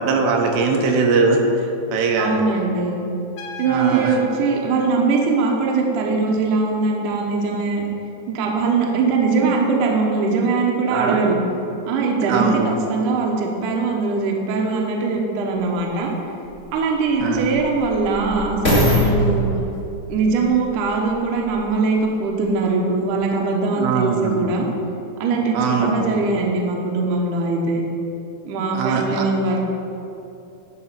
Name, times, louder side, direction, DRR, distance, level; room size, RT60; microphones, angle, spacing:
voice 1, 0.0-1.4 1.9-2.4 3.7-4.2 10.9-11.2 12.3-12.7 17.2-17.6 23.8-24.4 25.5-26.1 28.7-29.3, right 4 dB, 85° right, 2 dB, 3.0 m, -20 dB
voice 2, 2.2-3.0 3.6-7.8 8.3-11.4 11.9-16.1 16.7-19.5 20.1-24.7 25.2-27.8 28.4-29.6, right 4 dB, 70° right, 0 dB, 2.2 m, -21 dB
Trumpet, 3.4-6.0, right 1 dB, 90° left, 3.1 m, -37 dB
sound 1, 15.6-15.7 16.4-21.7 22.4-22.5, equal, 30° left, 1.3 m, -23 dB
12.0 x 4.8 x 5.8 m, 2.8 s
omnidirectional pair, 4.7 m